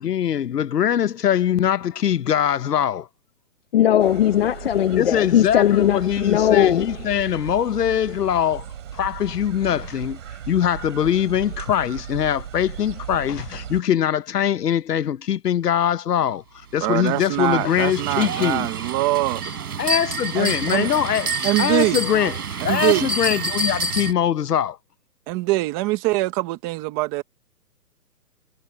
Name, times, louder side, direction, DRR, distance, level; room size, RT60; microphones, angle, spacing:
voice 1, 0.0-3.0 4.9-8.6 9.0-10.2 10.5-16.4 16.7-18.7 19.8-21.3 21.6-22.3 22.6-24.8, left 10 dB, 80° left, 1.0 m, -22 dB
voice 2, 3.7-7.1, left 11 dB, 40° left, 1.2 m, -19 dB
sound 1, 4.0-13.8, right 9 dB, 50° right, 6.3 m, -36 dB
voice 3, 16.8-19.4 20.3-20.9 21.4-22.0 22.6-23.1 25.3-27.2, right 19 dB, 15° right, 1.2 m, -23 dB
sound 2, 16.8-24.1, right 3 dB, 70° right, 4.9 m, -28 dB
hypercardioid pair, 165°, 47 cm